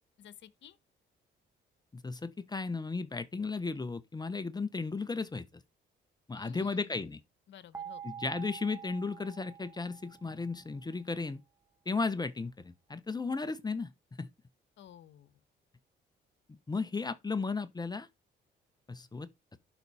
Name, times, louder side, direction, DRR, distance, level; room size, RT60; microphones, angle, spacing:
voice 1, 0.2-0.8 6.3-7.2 7.5-8.0 14.8-15.4, left 10 dB, 65° left, 1.2 m, -53 dB
voice 2, 1.9-5.5 6.3-7.2 8.0-11.4 11.9-13.9 14.2-14.3 16.5-18.1 18.9-19.6, left 4 dB, 20° left, 0.9 m, -35 dB
sound 1, 7.7-10.7, right 8 dB, 15° right, 1.3 m, -47 dB
11.5 x 5.4 x 4.2 m
cardioid pair, 90°, 20 cm